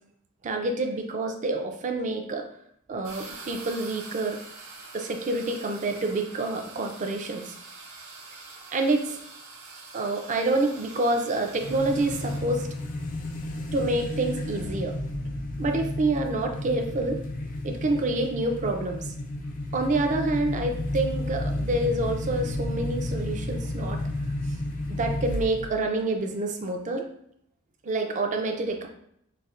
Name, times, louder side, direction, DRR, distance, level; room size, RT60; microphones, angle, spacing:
voice 1, 0.4-2.4 2.9-4.4 4.9-7.5 8.7-9.2 9.9-12.7 13.7-14.9 15.6-17.2 17.6-19.1 19.7-24.0 24.9-27.0 27.8-28.9, right 2 dB, 35° right, 3 dB, 0.4 m, -27 dB
sound 1, 3.0-12.4, right 3 dB, 65° right, 0.7 m, -45 dB
sound 2, 11.6-25.9, left 1 dB, 40° left, 0.4 m, -32 dB
4.1 x 2.0 x 2.4 m, 0.70 s
head